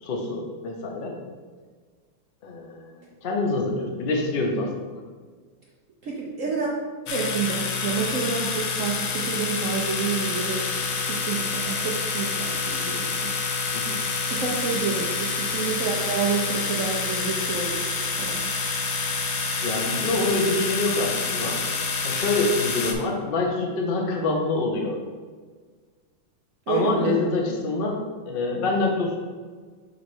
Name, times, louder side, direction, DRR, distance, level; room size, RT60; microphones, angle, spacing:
voice 1, 0.0-1.1 2.4-2.9 3.2-5.0 13.7-14.0 19.6-21.6 22.0-25.0 26.7-28.0 28.3-29.2, left 3 dB, 85° left, 1 dB, 0.5 m, -26 dB
voice 2, 6.0-6.8 7.1-13.3 14.3-17.9 18.2-18.4 26.7-27.2 27.5-27.6, right 5 dB, 75° right, -3 dB, 0.7 m, -29 dB
sound 1, 7.1-22.9, left 4 dB, 70° left, 1.0 m, -28 dB
6.6 x 3.2 x 4.5 m, 1.5 s
omnidirectional pair, 2.3 m